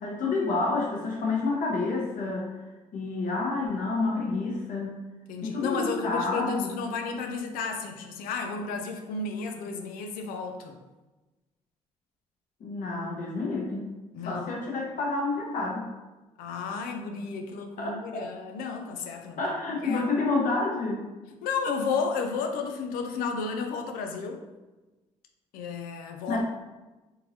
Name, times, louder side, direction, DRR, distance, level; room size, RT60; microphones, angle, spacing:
voice 1, 0.0-2.5 2.9-5.0 5.4-6.7 12.6-13.9 14.2-15.8 17.8-18.3 19.4-21.1 26.3-26.4, left 3 dB, 70° left, -3 dB, 1.1 m, -29 dB
voice 2, 5.3-10.8 14.1-14.6 16.4-19.4 19.8-20.1 21.4-24.4 25.5-26.4, left 5 dB, 85° left, 4 dB, 0.5 m, -32 dB
3.7 x 2.7 x 2.8 m, 1.1 s
supercardioid pair, 65°, 14 cm